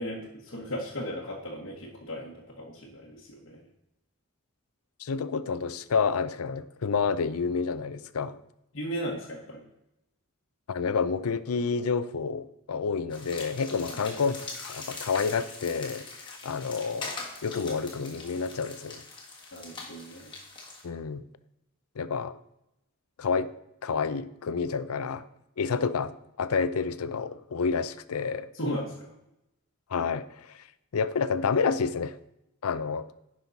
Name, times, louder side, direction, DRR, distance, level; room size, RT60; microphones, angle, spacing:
voice 1, 0.0-3.6 8.7-9.6 13.9-14.0 19.5-20.3 28.5-29.1, equal, 60° left, -4 dB, 1.2 m, -36 dB
voice 2, 5.0-8.4 10.7-17.1 17.4-19.0 20.8-21.2 22.0-22.4 23.2-23.5 23.8-25.3 25.6-28.5 29.9-30.6 30.9-32.2 32.6-33.1, left 5 dB, 90° left, 14 dB, 0.5 m, -29 dB
sound 1, 13.1-20.8, left 3 dB, 20° left, 1.6 m, -42 dB
10.5 x 5.5 x 4.0 m, 0.86 s
head